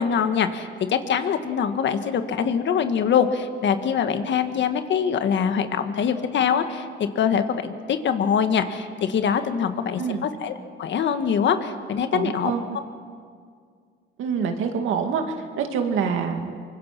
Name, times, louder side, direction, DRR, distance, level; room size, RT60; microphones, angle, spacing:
voice 1, 0.0-12.5, left 7 dB, 65° left, 8 dB, 1.6 m, -24 dB
voice 2, 12.1-12.8 14.2-15.2 15.6-16.5, right 6 dB, 85° right, 5 dB, 2.2 m, -26 dB
24.5 x 23.0 x 6.0 m, 2.1 s
cardioid pair, 90°, 20 cm